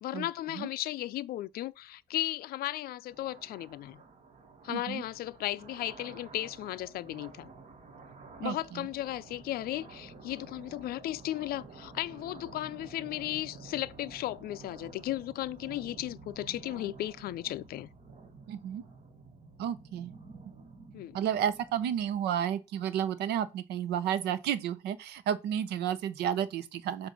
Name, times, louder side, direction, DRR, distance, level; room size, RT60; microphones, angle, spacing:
voice 1, 0.0-4.0 4.6-7.5 8.4-17.9 20.9-21.2, left 14 dB, 65° left, 0.4 m, -35 dB
sound 1, 3.1-22.3, right 4 dB, 40° right, 1.6 m, -51 dB
voice 2, 4.7-5.0 8.4-8.9 18.5-18.8 19.6-20.1 21.1-27.1, right 9 dB, 80° right, 0.8 m, -32 dB
7.5 x 2.6 x 5.2 m
cardioid pair, 110°, 17 cm